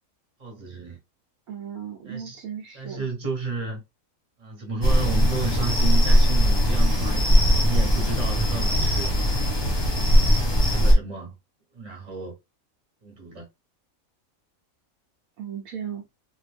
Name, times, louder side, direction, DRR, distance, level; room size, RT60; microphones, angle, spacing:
voice 1, 0.4-1.0 2.0-2.4 2.7-3.8 4.4-9.2 10.6-11.3 11.7-12.3 13.0-13.5, right 4 dB, 30° right, 1.1 m, -32 dB
voice 2, 1.5-3.1 15.4-16.1, right 8 dB, 80° right, 1.1 m, -36 dB
sound 1, 4.8-10.9, equal, 20° left, 0.8 m, -20 dB
2.6 x 2.2 x 3.3 m
omnidirectional pair, 1.5 m